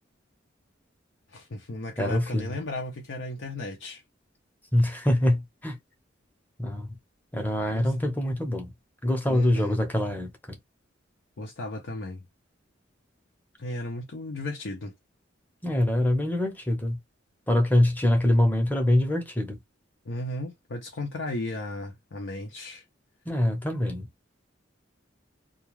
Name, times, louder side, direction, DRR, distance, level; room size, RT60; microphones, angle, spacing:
voice 1, 1.3-4.0 7.7-7.9 9.3-9.8 11.4-12.2 13.6-14.9 20.0-22.8, left 1 dB, 75° left, 0.7 m, -35 dB
voice 2, 2.0-2.6 4.7-5.8 6.6-7.0 7.3-8.7 9.0-10.6 15.6-17.0 17.5-19.6 23.3-24.1, left 1 dB, 10° left, 0.8 m, -24 dB
2.4 x 2.2 x 3.0 m
head